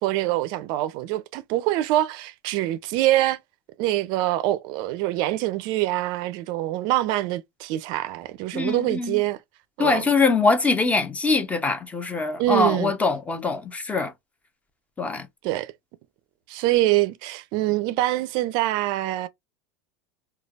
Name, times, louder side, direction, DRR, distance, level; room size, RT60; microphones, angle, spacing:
voice 1, 0.0-3.4 3.8-9.4 9.8-10.0 12.4-12.9 15.4-15.7 16.5-19.3, right 15 dB, 60° right, 0.4 m, -24 dB
voice 2, 8.5-9.2 9.8-14.1 15.0-15.3, left 3 dB, 15° left, 0.7 m, -23 dB
3.2 x 2.3 x 2.3 m
supercardioid pair, 115°, 9 cm